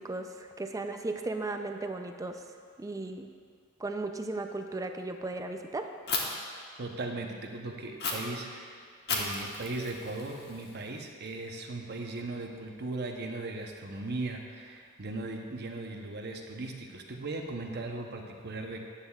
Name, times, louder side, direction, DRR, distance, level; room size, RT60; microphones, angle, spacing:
voice 1, 0.0-2.4 2.8-3.3 3.8-5.9, right 2 dB, 15° right, 6 dB, 0.4 m, -36 dB
Fire, 6.1-6.2 8.0-8.1 9.1-11.0, left 4 dB, 50° left, 1.2 m, -34 dB
voice 2, 6.8-8.8 9.1-18.9, right 2 dB, 50° right, 2 dB, 0.8 m, -38 dB
12.5 x 10.0 x 2.4 m, 2.1 s
head